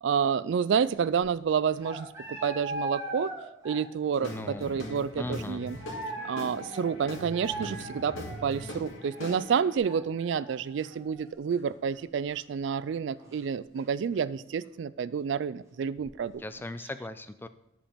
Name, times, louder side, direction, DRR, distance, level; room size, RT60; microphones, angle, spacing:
voice 1, 0.0-3.3 3.6-5.8 6.2-8.2 8.4-16.4, right 7 dB, 70° right, 17 dB, 0.3 m, -29 dB
sound 1, 1.7-4.1 4.4-4.5 5.7-12.0 12.3-12.4 13.2-13.3 13.8-13.9 14.1-14.2 16.0-16.3, right 2 dB, 15° right, 1.9 m, -40 dB
Guitar / Drum, 4.2-9.8, left 1 dB, 90° left, 2.2 m, -41 dB
voice 2, 4.2-4.7 5.2-5.6 16.4-17.5, left 1 dB, 10° left, 11 dB, 0.3 m, -38 dB
10.0 x 5.2 x 5.0 m, 0.88 s
head